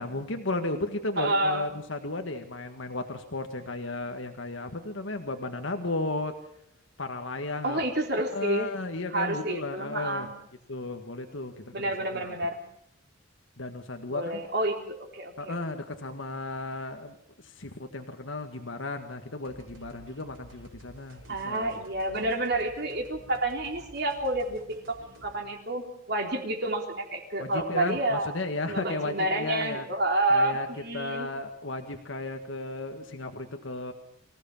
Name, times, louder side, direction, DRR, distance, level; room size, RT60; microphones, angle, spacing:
voice 1, 0.0-6.3 7.0-7.8 8.3-10.3 10.7-12.3 13.6-14.4 15.4-17.1 17.4-21.8 27.4-29.9 30.3-30.7 30.9-33.9, left 2 dB, 70° left, 5 dB, 1.7 m, -34 dB
voice 2, 1.2-1.7 7.6-8.7 9.1-10.3 11.7-12.6 14.1-15.5 21.3-24.6 24.9-28.3 28.7-31.3, right 1 dB, 55° right, 3 dB, 3.6 m, -29 dB
sound 1, 19.4-25.5, right 1 dB, 75° right, 4.7 m, -52 dB
24.5 x 16.0 x 7.3 m, 0.75 s
head